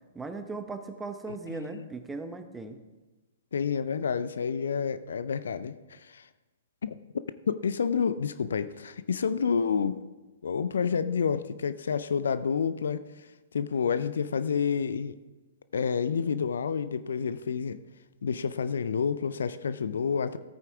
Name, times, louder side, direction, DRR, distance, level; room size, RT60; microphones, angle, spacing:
voice 1, 0.1-2.8, right 3 dB, 10° right, 8 dB, 0.9 m, -38 dB
voice 2, 1.3-1.9 3.5-6.3 6.8-7.0 7.5-10.0 10.4-13.3 13.5-15.1 15.7-17.8 18.2-20.4, left 6 dB, 65° left, 14 dB, 0.5 m, -29 dB
14.5 x 9.0 x 3.5 m, 1.2 s
figure-of-eight pair, 120°, 0 cm